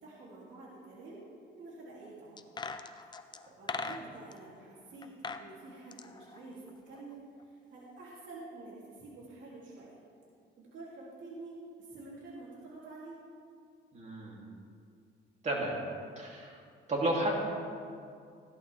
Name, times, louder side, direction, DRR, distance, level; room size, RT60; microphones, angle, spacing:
voice 1, 0.0-1.3 1.6-2.4 3.1-3.3 3.6-10.0 10.6-13.2, right 2 dB, 65° right, -6 dB, 3.1 m, -48 dB
sound 1, 2.4-4.4 5.0-5.5 5.8-7.1 7.4-7.5, left 4 dB, 20° left, 0.6 m, -40 dB
voice 2, 13.9-14.4 15.4-15.8 16.2-16.6 16.9-17.4, right 1 dB, 35° right, -2 dB, 3.0 m, -32 dB
16.0 x 12.0 x 3.5 m, 2.4 s
cardioid pair, 115°, 21 cm